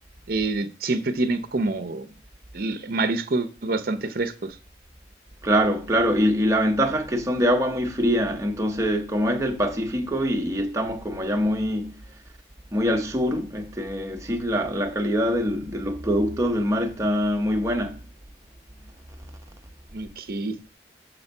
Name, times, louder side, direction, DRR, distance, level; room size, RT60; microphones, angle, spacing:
voice 1, 0.3-2.1 2.5-4.6 19.9-20.5, right 2 dB, 50° right, 0.6 m, -27 dB
voice 2, 5.4-12.0 12.7-18.0, equal, 15° right, 0.8 m, -24 dB
6.9 x 4.4 x 5.3 m
head